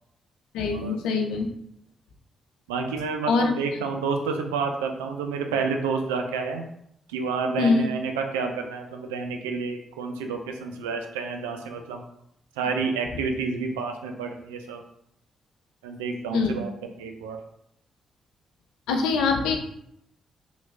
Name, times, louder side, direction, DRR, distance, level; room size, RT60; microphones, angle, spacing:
voice 1, 0.5-1.5 3.3-3.5 7.6-7.9 16.3-16.6 18.9-19.6, left 4 dB, 80° left, 4 dB, 0.4 m, -23 dB
voice 2, 2.7-6.6 7.1-12.0 12.6-14.8 15.8-16.7 17.0-17.4, right 4 dB, 90° right, 4 dB, 0.3 m, -29 dB
3.0 x 2.3 x 3.4 m, 0.73 s
hypercardioid pair, 40°, 0 cm